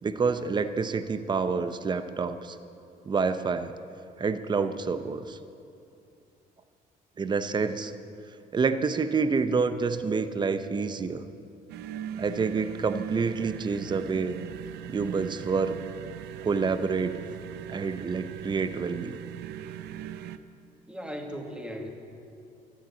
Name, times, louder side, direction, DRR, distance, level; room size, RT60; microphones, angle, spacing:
voice 1, 0.0-2.6 3.0-3.7 4.2-5.4 7.2-7.9 8.5-11.2 12.2-14.4 14.9-15.7 16.4-17.2 17.7-19.2, right 5 dB, 25° right, 10 dB, 0.8 m, -28 dB
sound 1, 11.7-20.4, right 9 dB, 85° right, 0.7 m, -39 dB
voice 2, 20.9-21.9, equal, 5° right, 2 dB, 2.0 m, -37 dB
12.5 x 12.0 x 8.4 m, 2.7 s
cardioid pair, 110°, 17 cm